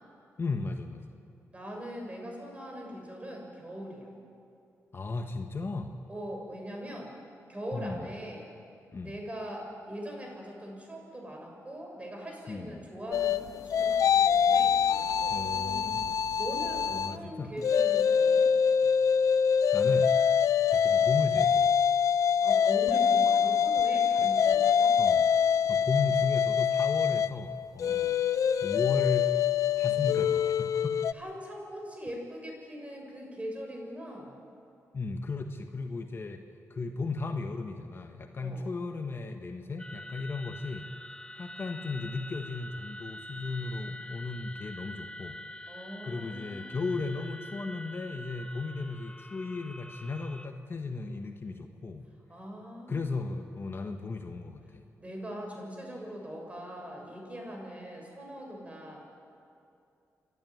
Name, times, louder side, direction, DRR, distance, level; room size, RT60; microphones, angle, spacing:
voice 1, 0.4-1.1 4.9-6.0 7.7-8.1 8.9-9.1 12.5-12.8 15.3-16.1 16.9-17.5 18.8-18.9 19.7-20.1 20.7-21.8 25.0-25.3 25.7-28.1 28.6-29.3 29.7-31.0 34.9-36.4 36.7-40.8 41.3-45.4 46.0-52.0 52.9-54.8, left 3 dB, 40° left, 5 dB, 1.4 m, -35 dB
voice 2, 1.5-4.1 6.1-7.1 7.5-8.5 9.0-15.9 16.4-18.5 22.4-25.0 27.8-28.1 29.9-30.8 31.1-34.4 38.4-38.6 45.7-46.8 52.3-53.3 55.0-59.0, equal, 20° right, 1 dB, 6.8 m, -41 dB
sound 1, 13.1-17.2 17.6-31.1, left 7 dB, 70° left, 0.6 m, -25 dB
sound 2, 39.8-50.5, left 1 dB, 15° left, 1.2 m, -45 dB
29.0 x 12.0 x 9.5 m, 2.6 s
cardioid pair, 75°, 6 cm